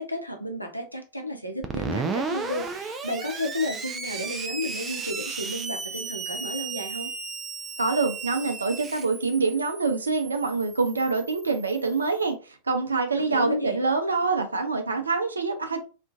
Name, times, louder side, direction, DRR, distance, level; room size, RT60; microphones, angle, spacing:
voice 1, 0.0-7.1 13.2-13.8, left 1 dB, 90° left, 0.5 m, -32 dB
Screech, 1.6-12.1, right 5 dB, 20° right, 0.4 m, -35 dB
voice 2, 7.8-15.8, right 4 dB, 75° right, 0.5 m, -25 dB
2.4 x 2.2 x 2.5 m
figure-of-eight pair, 90°, 0 cm